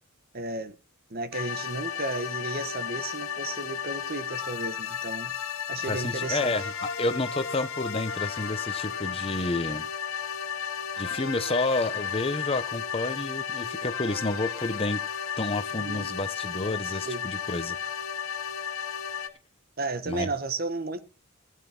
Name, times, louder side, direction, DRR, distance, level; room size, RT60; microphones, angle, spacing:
voice 1, 0.3-0.8 1.1-5.3 5.7-6.5 15.8-16.1 17.0-17.2 19.8-21.2, right 2 dB, 45° right, 1.2 m, -33 dB
sound 1, 1.3-19.3, left 7 dB, 75° left, 1.9 m, -33 dB
voice 2, 5.8-9.9 11.0-15.0 15.4-17.8 20.1-20.3, left 2 dB, 25° left, 0.9 m, -30 dB
17.0 x 9.4 x 4.4 m
head